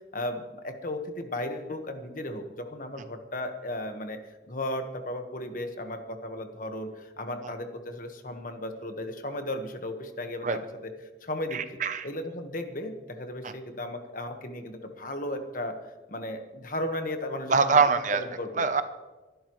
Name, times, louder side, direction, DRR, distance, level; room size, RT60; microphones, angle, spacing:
voice 1, 0.1-4.2 4.5-10.9 11.2-11.6 12.0-15.8 16.1-17.8 18.1-18.7, left 1 dB, 45° left, 6 dB, 1.4 m, -35 dB
voice 2, 11.5-12.1 13.4-13.5 17.5-18.2 18.6-18.8, right 5 dB, 40° right, 10 dB, 0.7 m, -23 dB
24.0 x 12.0 x 3.1 m, 1.2 s
head